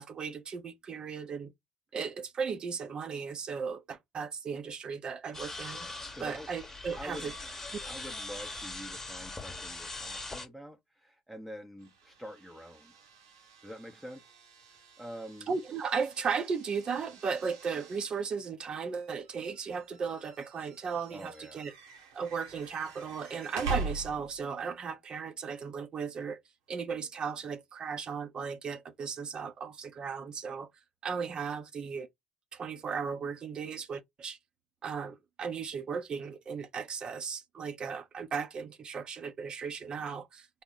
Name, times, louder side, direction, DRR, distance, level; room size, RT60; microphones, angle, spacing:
voice 1, 0.0-1.5 1.9-5.9 6.2-7.3 15.5-21.7 22.1-26.4 26.7-30.7 31.0-32.1 32.5-34.4 34.8-40.6, right 6 dB, 40° right, 0.6 m, -36 dB
sound 1, 5.3-10.5, left 2 dB, 15° left, 1.0 m, -41 dB
voice 2, 6.1-6.5 6.9-7.3 7.8-13.0 13.6-14.3 14.7-15.5 21.1-21.7, equal, 5° right, 0.7 m, -46 dB
sound 2, 11.8-24.6, right 3 dB, 80° right, 1.0 m, -44 dB
3.6 x 2.1 x 3.8 m
hypercardioid pair, 60°, 2 cm